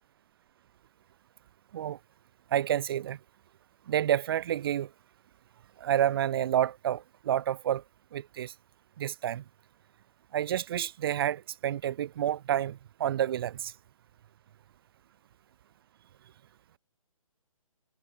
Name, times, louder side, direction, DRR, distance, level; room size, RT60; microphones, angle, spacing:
voice 1, 2.5-3.2 3.9-4.9 5.8-7.8 8.1-8.5 9.0-9.4 10.3-13.7, right 11 dB, 40° right, 2.8 m, -29 dB
figure-of-eight pair, 135°, 18 cm